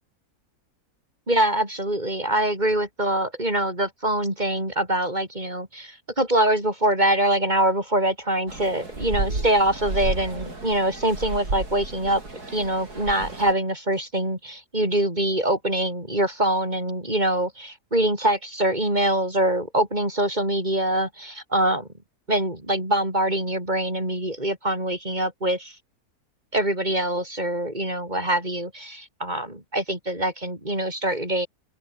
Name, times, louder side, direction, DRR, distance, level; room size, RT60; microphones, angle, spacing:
voice 1, 1.3-12.2 12.5-21.9 22.3-25.8 26.5-31.5, right 1 dB, 25° right, 7.9 m, -24 dB
sound 1, 8.5-13.5, right 2 dB, 80° right, 6.1 m, -32 dB
open air
omnidirectional pair, 1.6 m